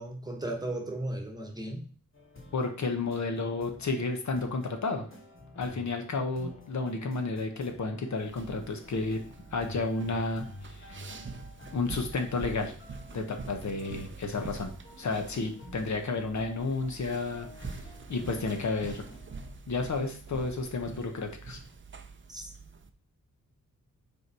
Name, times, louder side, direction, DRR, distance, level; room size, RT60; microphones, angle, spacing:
voice 1, 0.0-1.8 22.3-22.5, right 1 dB, 10° right, 1 dB, 1.1 m, -36 dB
sound 1, 2.1-19.5, left 2 dB, 40° left, 1.9 m, -50 dB
voice 2, 2.5-5.1 5.5-9.2 9.5-11.0 11.7-12.7 13.1-14.7 15.0-19.0 19.7-21.6, left 3 dB, 60° left, 5 dB, 1.0 m, -32 dB
sound 2, 8.2-22.9, right 4 dB, 35° right, 0.5 m, -45 dB
5.4 x 4.6 x 4.7 m, 0.41 s
wide cardioid pair, 175°, 33 cm